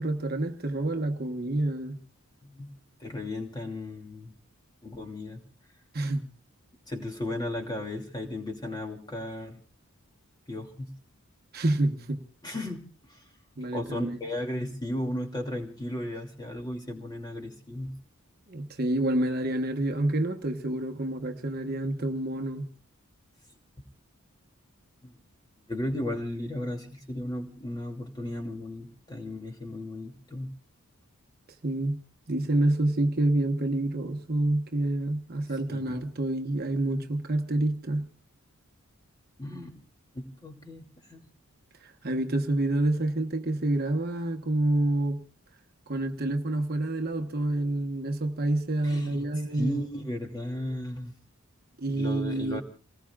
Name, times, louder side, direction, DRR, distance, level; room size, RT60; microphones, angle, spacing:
voice 1, 0.0-2.0 5.9-6.3 11.5-12.2 13.6-14.2 18.5-22.7 31.6-32.0 32.3-38.1 41.8-45.2 45.9-49.8 51.8-52.6, right 1 dB, 45° right, 1.2 m, -28 dB
voice 2, 3.0-4.3 4.8-5.4 6.9-9.6 10.5-10.9 12.4-13.3 13.7-17.9 25.0-25.1 25.7-30.5 35.5-36.0 39.4-39.8 40.1-41.2 48.8-49.3 49.5-51.1 51.9-52.6, left 1 dB, 20° left, 2.7 m, -35 dB
29.0 x 19.5 x 2.4 m
head